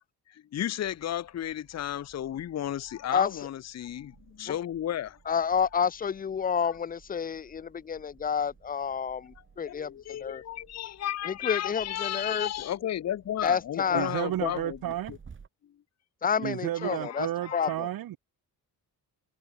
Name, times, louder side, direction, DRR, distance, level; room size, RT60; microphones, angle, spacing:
voice 1, 0.3-5.2 6.6-6.7 9.7-14.8 15.1-15.2 16.8-17.7, left 11 dB, 45° left, 0.9 m, -33 dB
sound 1, 0.8-15.5, right 6 dB, 30° right, 3.7 m, -57 dB
voice 2, 5.3-9.9 10.2-10.4 11.3-12.5 13.4-14.1 16.2-17.9, left 7 dB, 25° left, 0.4 m, -29 dB
voice 3, 13.9-15.1 16.4-18.2, right 13 dB, 65° right, 1.1 m, -32 dB
cardioid pair, 145°, 38 cm